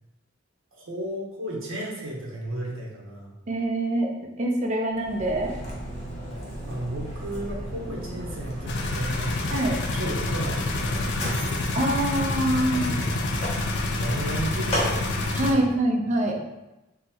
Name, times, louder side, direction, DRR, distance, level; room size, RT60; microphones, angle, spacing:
voice 1, 0.7-3.3 6.6-9.4 9.9-11.7 12.6-13.2 13.9-15.0 15.4-15.8 16.3-16.4, right 1 dB, 70° right, -2 dB, 0.8 m, -34 dB
voice 2, 3.5-4.1 4.4-5.5 9.5-9.8 11.7-12.9 15.3-16.4, right 1 dB, 35° right, 0 dB, 0.4 m, -24 dB
Mechanisms, 4.9-15.7, equal, 30° left, 0.8 m, -34 dB
sound 1, 8.7-15.5, left 2 dB, 60° left, 0.4 m, -28 dB
3.7 x 2.0 x 2.8 m, 0.99 s
head